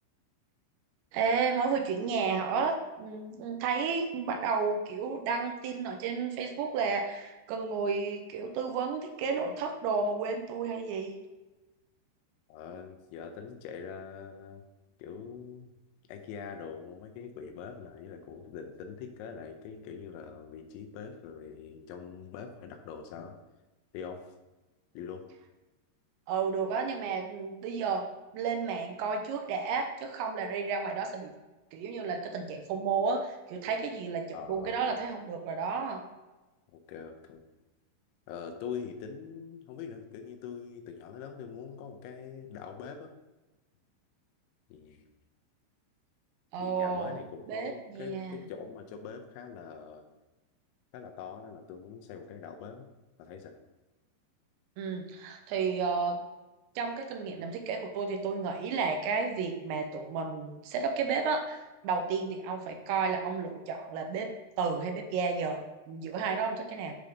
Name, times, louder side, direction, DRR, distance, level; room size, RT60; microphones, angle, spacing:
voice 1, 1.1-11.1 26.3-28.1 28.3-31.3 31.7-36.0 46.5-47.2 47.5-48.4 54.8-56.2 56.8-67.0, right 5 dB, 85° right, 4 dB, 2.8 m, -32 dB
voice 2, 12.5-14.6 15.0-15.7 16.1-23.4 23.9-24.3 24.9-25.2 34.3-34.8 36.7-37.4 38.3-43.1 44.7-45.0 46.6-50.1 50.9-52.9 53.2-53.5, left 6 dB, 85° left, 4 dB, 3.1 m, -43 dB
9.7 x 3.4 x 3.8 m, 1.1 s
omnidirectional pair, 5.3 m